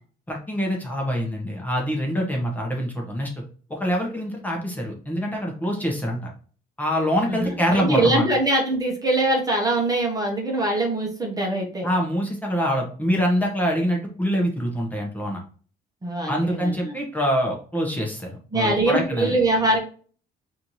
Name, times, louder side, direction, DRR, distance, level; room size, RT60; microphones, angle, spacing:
voice 1, 0.3-3.3 3.7-6.3 6.8-8.3 11.8-15.4 16.3-19.4, equal, 10° left, -1 dB, 1.0 m, -25 dB
voice 2, 7.2-11.9 16.0-17.0 18.5-19.8, right 2 dB, 20° right, 0 dB, 1.0 m, -23 dB
4.3 x 2.7 x 3.0 m, 0.41 s
cardioid pair, 110°, 17 cm